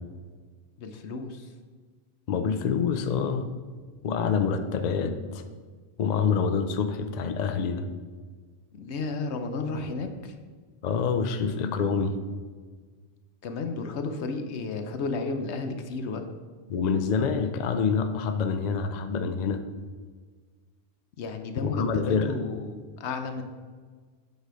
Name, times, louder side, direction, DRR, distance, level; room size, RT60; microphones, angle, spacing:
voice 1, 0.8-1.5 8.7-10.4 13.4-16.3 21.2-23.4, left 3 dB, 80° left, 7 dB, 1.0 m, -32 dB
voice 2, 2.3-3.5 4.0-5.4 6.0-7.9 10.8-12.1 16.7-19.6 21.7-22.3, left 5 dB, 50° left, 8 dB, 0.5 m, -26 dB
8.0 x 4.1 x 5.0 m, 1.5 s
omnidirectional pair, 1.1 m